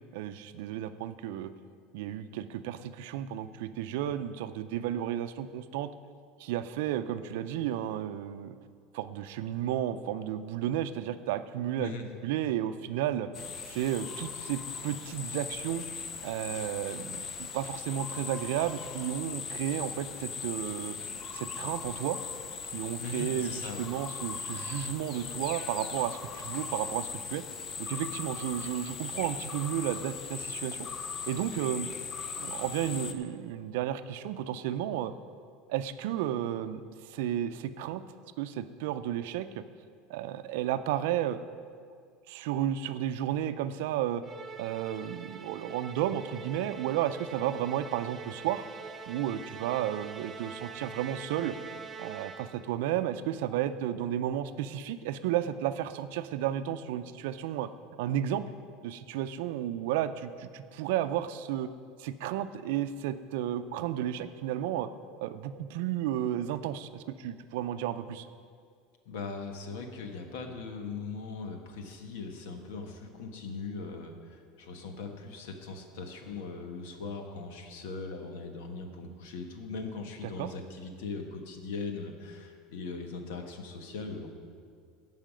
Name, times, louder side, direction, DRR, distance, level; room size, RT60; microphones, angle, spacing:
voice 1, 0.1-1.5 1.9-5.9 6.4-8.5 8.9-11.9 12.2-13.3 13.7-15.8 16.2-21.0 21.3-22.2 22.7-27.4 27.8-30.9 31.3-31.9 32.4-35.1 35.7-38.0 38.4-39.6 40.1-41.4 42.3-44.2 44.6-48.7 49.1-51.6 52.0-57.7 58.0-58.5 58.8-61.7 62.0-64.9 65.2-68.3 80.2-80.5, right 11 dB, 80° right, 11 dB, 0.5 m, -33 dB
sound 1, 13.3-33.1, left 6 dB, 40° left, 0.7 m, -39 dB
voice 2, 23.0-23.9 69.0-84.3, left 4 dB, 80° left, 5 dB, 1.3 m, -40 dB
Musical instrument, 44.2-52.8, right 5 dB, 25° right, 0.5 m, -44 dB
16.0 x 5.7 x 5.1 m, 2.1 s
supercardioid pair, 120°, 0 cm